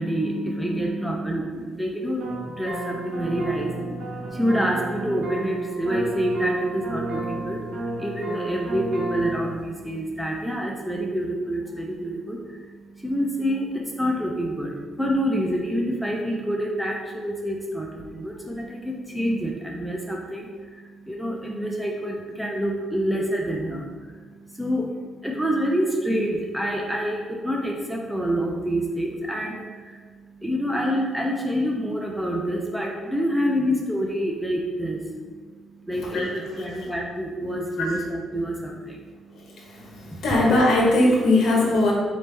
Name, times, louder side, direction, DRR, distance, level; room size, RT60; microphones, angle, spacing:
voice 1, 0.0-40.2, equal, 5° right, -1 dB, 0.4 m, -27 dB
sound 1, 2.2-9.6, right 2 dB, 60° right, 1.1 m, -32 dB
voice 2, 40.2-41.9, left 2 dB, 60° left, -2 dB, 1.0 m, -19 dB
4.0 x 3.3 x 3.2 m, 1.5 s
cardioid pair, 140°, 0 cm